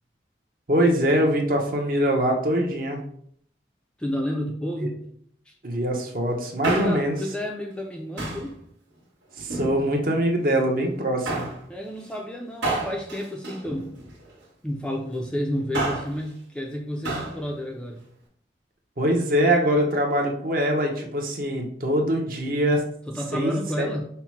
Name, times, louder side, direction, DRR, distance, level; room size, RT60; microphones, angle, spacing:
voice 1, 0.7-3.0 5.6-7.2 9.4-11.5 19.0-22.8 23.3-23.9, equal, 50° right, 2 dB, 0.8 m, -23 dB
voice 2, 4.0-5.0 5.5-5.6 6.7-8.6 11.7-13.9 14.6-18.0 23.1-24.1, equal, 5° left, 1 dB, 0.4 m, -30 dB
Male speech man speaking, 6.4-7.2 8.2-8.5 9.4-10.2 11.2-11.6 12.6-14.3 15.5-16.2 17.0-17.4 17.7-17.8, right 2 dB, 90° right, 1.4 m, -30 dB
5.6 x 2.1 x 4.5 m, 0.65 s
head